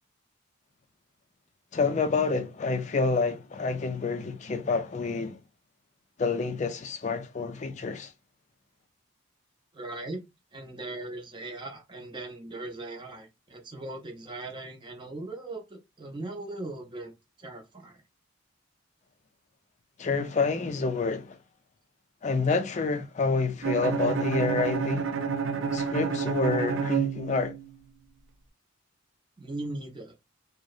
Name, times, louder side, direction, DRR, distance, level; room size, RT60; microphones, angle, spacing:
voice 1, 1.7-5.4 6.2-8.1 20.0-21.4 22.2-25.1 25.7-27.5, left 4 dB, 35° left, 0.4 m, -28 dB
voice 2, 9.7-10.2 10.5-17.1 17.4-18.0 29.4-30.1, right 2 dB, 25° right, 0.5 m, -39 dB
Bowed string instrument, 23.6-27.7, right 6 dB, 70° right, 0.5 m, -29 dB
2.8 x 2.0 x 2.3 m
head